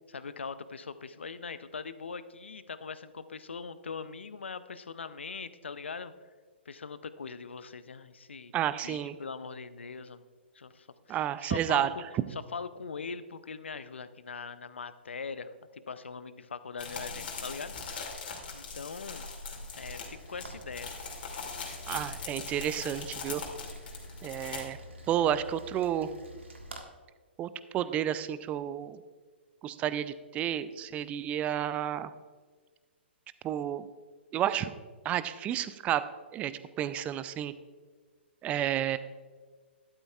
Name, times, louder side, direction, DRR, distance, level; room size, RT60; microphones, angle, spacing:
voice 1, 0.1-6.1 6.7-8.5 8.8-10.2 10.5-12.0 12.3-18.0 18.5-19.3 19.8-20.9, left 5 dB, 75° left, 13 dB, 0.6 m, -41 dB
voice 2, 8.5-9.2 11.1-11.9 21.9-23.4 24.2-24.8 25.1-26.1 27.4-29.0 29.6-32.1 33.4-33.9 34.3-34.7 35.0-36.0 36.3-36.5 36.8-37.5 38.4-39.0, right 11 dB, 20° right, 14 dB, 0.5 m, -31 dB
sound 1, 16.8-24.6, left 4 dB, 55° left, 2.6 m, -41 dB
Rain, 19.7-26.8, equal, 85° right, 1.7 m, -49 dB
12.5 x 12.0 x 2.4 m, 1.5 s
figure-of-eight pair, 125°, 6 cm